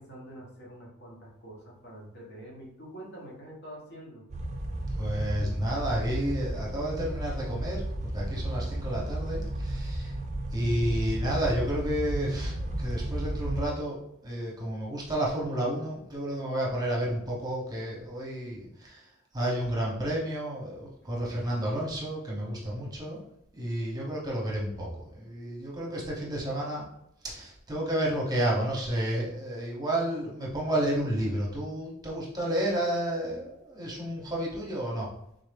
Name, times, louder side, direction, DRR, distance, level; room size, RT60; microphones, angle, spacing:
voice 1, 0.0-4.3, right 1 dB, 60° left, -3 dB, 1.2 m, -46 dB
sound 1, 4.3-13.6, right 1 dB, 35° right, 0.5 m, -33 dB
voice 2, 5.0-10.1 10.5-19.1 19.3-23.2 23.5-26.9 27.2-35.1, right 1 dB, 20° right, -4 dB, 0.9 m, -31 dB
3.8 x 2.6 x 3.4 m, 0.75 s
head